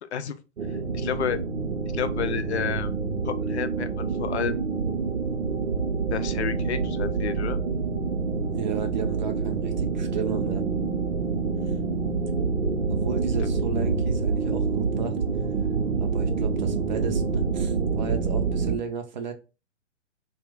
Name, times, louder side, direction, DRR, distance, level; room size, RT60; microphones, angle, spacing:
sound 1, 0.6-18.8, right 4 dB, 80° right, 0.7 m, -27 dB
voice 1, 0.9-1.4 1.9-2.9 3.2-4.6 6.1-7.6, left 8 dB, 65° left, 0.5 m, -30 dB
voice 2, 8.4-10.6 12.9-15.2 16.0-19.3, right 7 dB, 40° right, 0.4 m, -33 dB
2.2 x 2.0 x 3.7 m
figure-of-eight pair, 120°, 37 cm